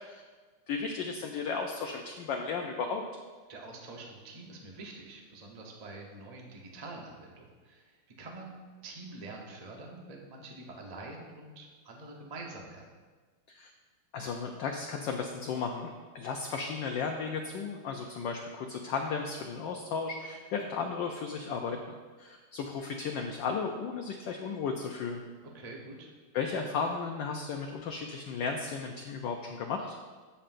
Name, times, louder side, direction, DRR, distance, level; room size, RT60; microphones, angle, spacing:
voice 1, 0.7-3.0 13.5-13.7 14.1-25.2 26.3-30.0, left 5 dB, 70° left, 3 dB, 1.1 m, -35 dB
voice 2, 3.5-12.9 25.4-26.1, right 2 dB, 55° right, 0 dB, 0.4 m, -46 dB
14.0 x 5.6 x 2.6 m, 1.4 s
omnidirectional pair, 2.4 m